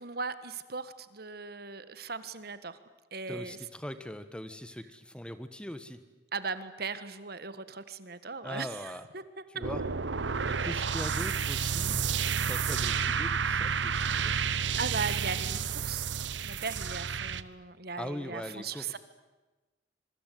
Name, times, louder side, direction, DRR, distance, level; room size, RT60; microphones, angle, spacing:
voice 1, 0.0-2.8 3.1-3.7 6.3-9.6 13.9-16.1 16.4-19.0, right 4 dB, 55° right, 13 dB, 1.6 m, -38 dB
voice 2, 3.3-6.0 8.4-9.0 9.6-9.8 10.4-12.0 12.5-14.5 18.0-19.0, equal, 5° left, 11 dB, 1.3 m, -41 dB
sound 1, 9.6-17.4, right 6 dB, 85° right, 1.0 m, -30 dB
26.5 x 23.5 x 9.3 m, 1.2 s
head